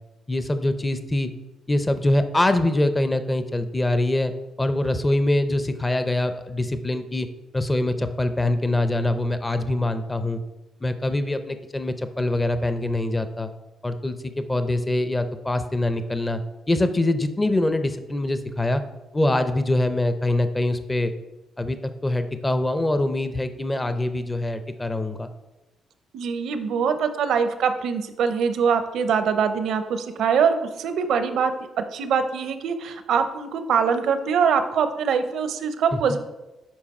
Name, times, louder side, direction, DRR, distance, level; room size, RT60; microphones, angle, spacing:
voice 1, 0.3-1.3 1.7-4.3 4.6-7.3 7.5-10.4 10.8-13.5 13.8-16.4 16.7-18.8 19.1-21.1 21.6-21.8 22.0-25.3 36.1-36.2, left 1 dB, 15° left, 9 dB, 0.6 m, -24 dB
voice 2, 26.1-36.2, right 6 dB, 75° right, 9 dB, 0.6 m, -23 dB
7.3 x 5.1 x 4.2 m, 1.0 s
cardioid pair, 90°, 0 cm